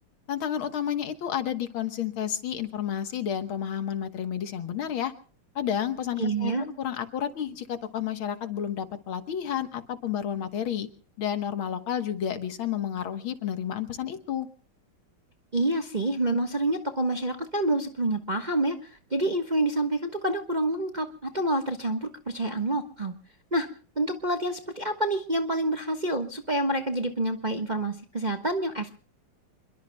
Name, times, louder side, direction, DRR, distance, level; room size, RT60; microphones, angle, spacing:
voice 1, 0.3-5.1 5.6-10.9 11.2-14.5, left 9 dB, 70° left, 9 dB, 2.0 m, -31 dB
voice 2, 6.2-6.6 15.5-23.1 23.5-23.7 24.0-28.9, right 1 dB, 25° right, 5 dB, 1.1 m, -27 dB
28.5 x 22.0 x 2.2 m, 0.42 s
omnidirectional pair, 2.4 m